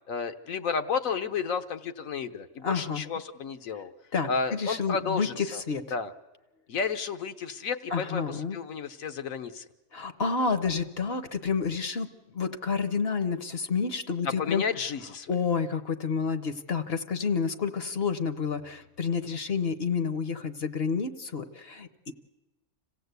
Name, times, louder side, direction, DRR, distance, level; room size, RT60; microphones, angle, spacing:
voice 1, 0.1-3.9 4.3-5.6 5.9-6.1 6.7-9.6 10.5-10.6 14.2-15.3, left 5 dB, 75° left, 8 dB, 1.4 m, -32 dB
voice 2, 2.6-3.1 4.1-5.8 7.9-8.6 9.9-14.6 15.3-22.1, left 5 dB, 50° left, 10 dB, 1.0 m, -29 dB
26.5 x 16.0 x 8.1 m, 1.1 s
omnidirectional pair, 1.4 m